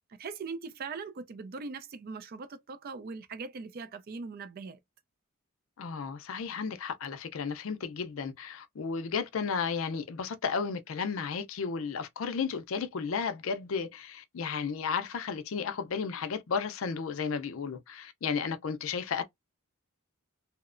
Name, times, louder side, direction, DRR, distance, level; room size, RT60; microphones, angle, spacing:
voice 1, 0.1-4.8, right 4 dB, 45° right, 0.4 m, -40 dB
voice 2, 5.8-19.2, left 5 dB, 65° left, 0.4 m, -33 dB
2.8 x 2.1 x 2.4 m
head